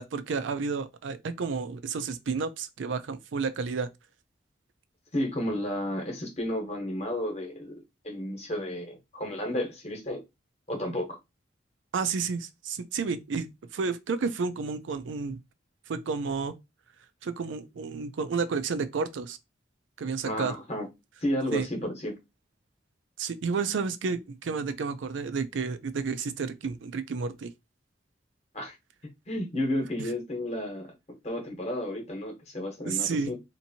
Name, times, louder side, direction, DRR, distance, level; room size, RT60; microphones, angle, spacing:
voice 1, 0.0-3.9 11.9-13.5 13.7-15.4 15.9-16.5 17.2-19.4 20.0-20.5 21.5-21.7 23.2-27.5 32.9-33.3, right 5 dB, 90° right, 0.4 m, -31 dB
voice 2, 5.1-10.2 10.7-11.2 20.3-20.9 21.2-22.2 28.5-28.7 29.3-30.9 31.2-33.3, left 1 dB, 35° left, 0.9 m, -32 dB
2.9 x 2.6 x 2.7 m
head